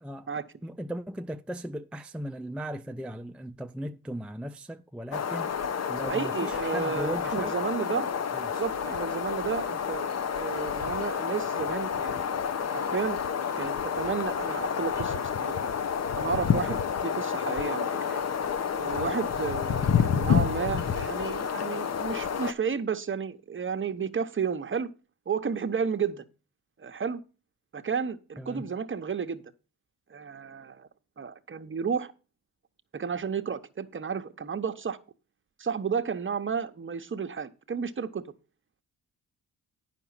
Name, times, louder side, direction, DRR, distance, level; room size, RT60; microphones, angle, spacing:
voice 1, 0.0-0.3 0.6-5.5 5.9-7.5 8.3-8.6 28.4-28.7, right 1 dB, 5° right, 0.4 m, -37 dB
sound 1, 5.1-22.5, left 7 dB, 45° left, 0.9 m, -29 dB
voice 2, 6.1-8.1 8.6-12.3 12.7-13.2 13.6-15.6 16.2-18.2 18.8-24.9 25.3-26.2 26.8-27.2 27.7-29.4 30.1-30.9 31.2-32.1 32.9-35.0 35.6-38.2, right 6 dB, 35° right, 0.9 m, -32 dB
9.1 x 5.9 x 5.6 m
supercardioid pair, 65°, 36 cm